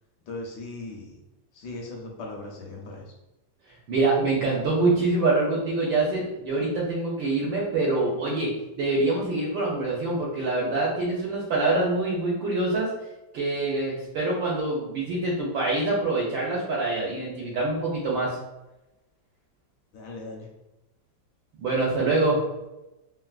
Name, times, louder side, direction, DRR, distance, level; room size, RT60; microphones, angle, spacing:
voice 1, 0.3-1.2 1.5-3.1 19.9-20.5, left 2 dB, 70° left, 0 dB, 1.1 m, -38 dB
voice 2, 3.9-12.9 13.3-18.4 21.6-22.4, right 2 dB, 75° right, -5 dB, 1.3 m, -25 dB
3.4 x 2.3 x 2.3 m, 0.97 s
omnidirectional pair, 2.2 m